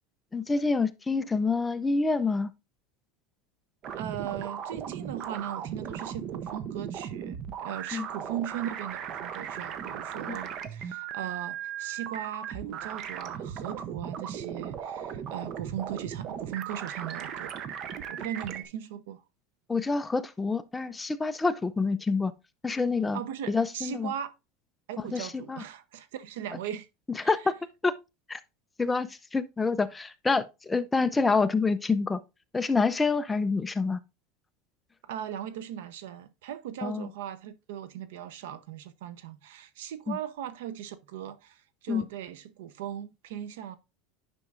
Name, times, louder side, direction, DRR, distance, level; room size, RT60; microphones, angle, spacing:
voice 1, 0.3-2.5 7.9-8.1 10.3-10.4 19.7-22.3 22.6-23.2 23.5-24.1 25.1-25.6 27.3-27.5 27.8-27.9 28.3-28.4 28.8-32.2 32.5-34.0 36.8-37.1 40.1-40.2 41.9-42.0, left 4 dB, 10° left, 0.4 m, -27 dB
sound 1, 3.8-18.7, right 8 dB, 35° right, 0.7 m, -37 dB
voice 2, 3.9-17.5 18.1-19.2 23.1-24.3 24.9-26.9 27.2-27.5 35.0-43.8, right 10 dB, 85° right, 0.7 m, -38 dB
9.7 x 5.4 x 2.4 m
supercardioid pair, 160°, 0 cm